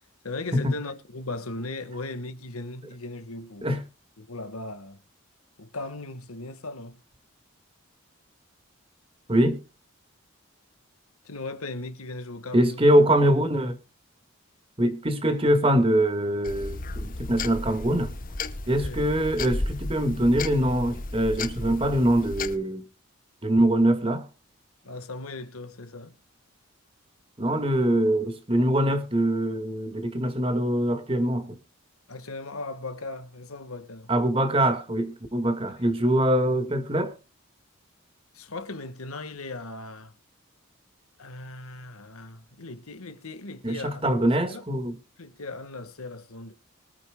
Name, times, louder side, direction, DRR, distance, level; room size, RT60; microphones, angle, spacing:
voice 1, 0.2-3.8 4.2-5.0 5.6-7.0 11.2-12.8 18.7-19.1 24.8-26.1 32.1-34.1 38.3-40.1 41.2-44.2 44.5-44.6 45.2-46.5, left 2 dB, 85° left, 1.6 m, -38 dB
voice 2, 9.3-9.6 12.5-13.8 14.8-18.1 18.7-22.8 23.4-24.3 27.4-31.6 34.1-37.1 43.6-45.0, right 1 dB, 25° right, 1.8 m, -23 dB
sound 1, 16.4-22.6, left 2 dB, 40° left, 1.0 m, -34 dB
23.0 x 8.9 x 2.3 m
head